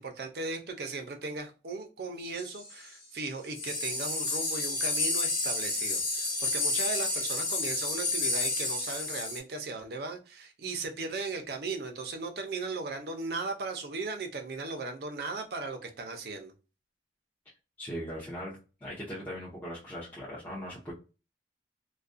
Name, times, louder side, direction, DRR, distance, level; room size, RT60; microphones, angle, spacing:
voice 1, 0.0-16.5, right 3 dB, 60° right, 4 dB, 0.5 m, -37 dB
sound 1, 2.3-2.7 3.5-9.4, left 2 dB, 35° left, 1.0 m, -30 dB
voice 2, 17.8-20.9, equal, 10° left, -9 dB, 0.6 m, -39 dB
2.4 x 2.2 x 2.4 m, 0.32 s
head